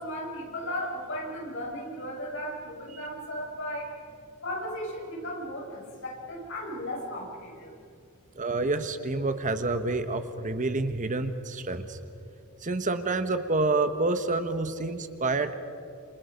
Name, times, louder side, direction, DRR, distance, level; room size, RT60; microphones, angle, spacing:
voice 1, 0.0-3.9 4.4-7.7, equal, 55° left, -1 dB, 6.7 m, -36 dB
voice 2, 8.3-12.0 12.6-15.5, right 3 dB, 35° right, 9 dB, 1.2 m, -28 dB
28.5 x 28.5 x 5.2 m, 2.6 s
head